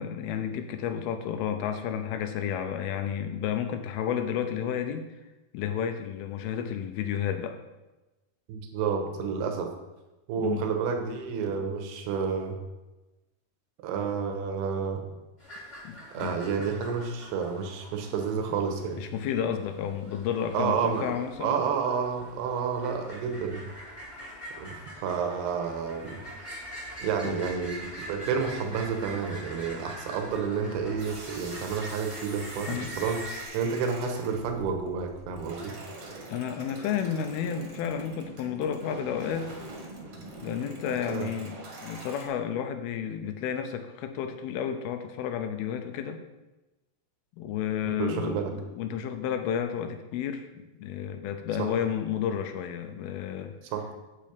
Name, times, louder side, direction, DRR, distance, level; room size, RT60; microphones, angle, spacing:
voice 1, 0.0-5.1 5.5-7.6 10.4-10.6 15.8-16.4 19.0-21.6 27.2-27.3 32.7-32.9 36.3-39.5 40.4-46.2 47.4-53.5, left 8 dB, 80° left, 7 dB, 2.3 m, -31 dB
voice 2, 8.5-9.7 10.3-12.6 13.8-15.0 16.1-19.0 20.5-23.7 24.6-24.8 25.0-26.2 27.0-33.2 33.5-35.7 41.1-41.3 47.9-48.5 53.7-53.8, right 6 dB, 75° right, 4 dB, 3.0 m, -30 dB
sound 1, 15.4-33.4, equal, 15° left, 2.0 m, -44 dB
sound 2, 31.0-42.3, right 2 dB, 50° right, 2.0 m, -44 dB
8.6 x 8.6 x 5.2 m, 1.1 s
omnidirectional pair, 5.0 m